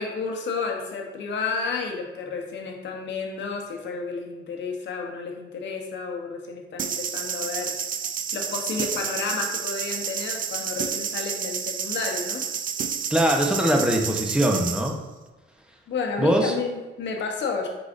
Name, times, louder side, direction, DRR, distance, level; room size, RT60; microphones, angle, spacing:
voice 1, 0.0-7.8 8.3-12.5 15.9-17.7, left 4 dB, 65° left, 2 dB, 0.9 m, -31 dB
sound 1, 6.8-14.9, right 7 dB, 45° right, 0.4 m, -30 dB
voice 2, 13.1-14.9 16.2-16.5, equal, 5° right, 1 dB, 0.8 m, -22 dB
4.8 x 3.9 x 2.5 m, 1.2 s
cardioid pair, 90°, 20 cm